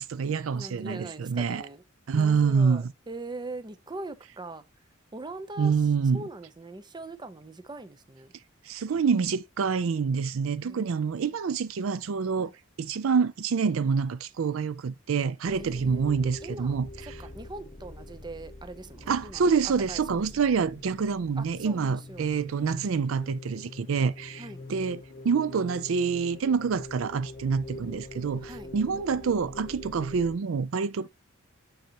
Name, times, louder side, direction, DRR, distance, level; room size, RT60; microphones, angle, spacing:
voice 1, 0.0-1.6 2.1-2.9 5.6-6.3 8.7-12.5 12.8-17.2 19.1-31.1, right 5 dB, 75° right, 0.4 m, -27 dB
voice 2, 0.5-1.8 2.1-4.6 5.1-5.7 6.1-8.3 10.6-11.3 12.4-12.5 15.5-19.5 19.9-20.2 21.4-22.3 24.4-24.6 28.5-28.7, right 2 dB, 20° right, 0.6 m, -42 dB
sound 1, 15.4-30.4, left 2 dB, 25° left, 1.2 m, -44 dB
6.4 x 5.6 x 2.9 m
head